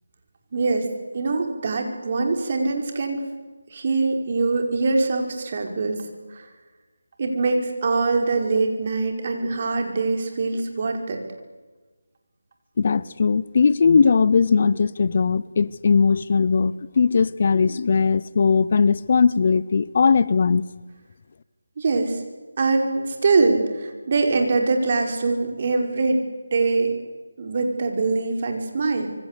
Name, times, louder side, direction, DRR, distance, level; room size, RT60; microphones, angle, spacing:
voice 1, 0.5-0.9 1.1-3.3 3.7-6.0 6.3-6.4 7.2-11.2 21.8-22.2 22.6-26.2 26.5-26.9 27.4-29.1, right 3 dB, 40° right, 5.2 m, -23 dB
voice 2, 12.8-20.6, left 5 dB, 40° left, 0.7 m, -19 dB
26.5 x 24.0 x 8.4 m
figure-of-eight pair, 165°, 0 cm